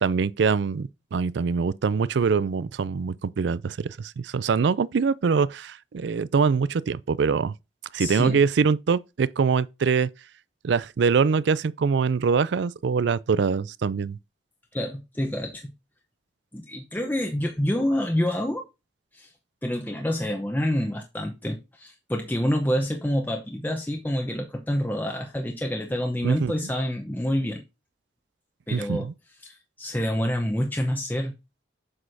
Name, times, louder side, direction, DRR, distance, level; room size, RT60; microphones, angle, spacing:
voice 1, 0.0-7.5 7.9-10.1 10.6-14.2 26.2-26.5 28.7-29.1, right 5 dB, 70° right, 0.4 m, -24 dB
voice 2, 8.0-8.4 14.7-15.7 16.5-18.6 19.1-19.3 19.6-27.6 28.7-29.1 29.4-31.3, equal, 10° left, 0.8 m, -27 dB
7.7 x 6.2 x 2.7 m
head